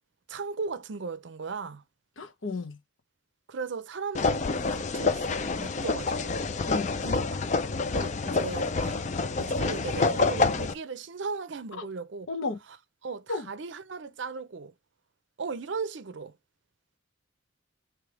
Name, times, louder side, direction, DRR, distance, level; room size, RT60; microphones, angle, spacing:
voice 1, 0.3-1.8 3.5-6.4 7.0-7.4 7.9-9.0 9.4-12.3 13.0-14.7 15.4-16.4, right 4 dB, 65° right, 0.5 m, -37 dB
voice 2, 2.2-2.8 6.7-6.9 11.8-11.9 12.3-12.6 13.3-13.5, left 3 dB, 80° left, 1.0 m, -33 dB
sound 1, 4.1-10.7, left 3 dB, 35° left, 0.4 m, -27 dB
3.4 x 3.2 x 4.8 m
head